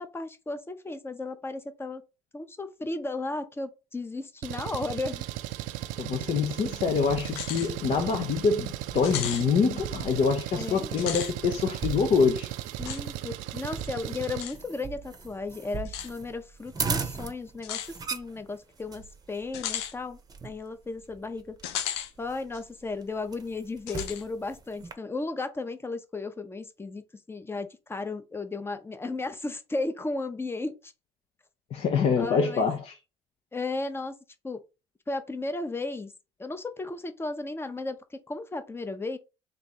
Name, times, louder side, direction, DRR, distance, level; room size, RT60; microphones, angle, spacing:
voice 1, 0.0-2.0 2.3-5.2 10.6-10.9 12.8-21.6 22.2-30.9 32.2-32.7 33.5-34.1 34.4-34.6 35.1-36.1 36.4-39.2, left 3 dB, 15° left, 0.7 m, -35 dB
Engine, 4.4-14.4, right 15 dB, 70° right, 0.4 m, -36 dB
voice 2, 6.0-12.5 31.7-33.0, left 5 dB, 50° left, 0.7 m, -25 dB
sound 1, 6.5-24.9, right 5 dB, 30° right, 0.7 m, -40 dB
sound 2, 7.2-7.7 8.1-8.2 9.0-9.5 10.9-11.3 12.8-13.0 14.4-14.6 15.8-16.1 17.6-17.9 19.5-19.9 21.6-22.1 22.5-22.6 23.9-24.2, left 10 dB, 85° left, 0.5 m, -34 dB
3.3 x 2.6 x 4.1 m
hypercardioid pair, 60°, 14 cm